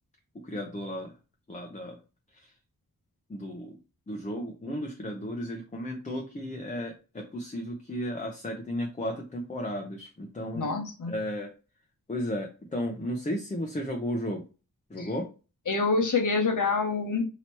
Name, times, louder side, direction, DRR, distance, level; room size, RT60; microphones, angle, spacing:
voice 1, 0.3-1.1 1.5-2.0 2.3-2.5 3.3-3.8 4.1-10.7 11.1-11.5 12.1-14.4 14.9-15.3, equal, 20° left, 0.7 m, -34 dB
voice 2, 10.5-11.1 15.0-15.1 15.7-17.3, left 4 dB, 65° left, 1.0 m, -26 dB
2.9 x 2.9 x 4.4 m
wide cardioid pair, 140°, 34 cm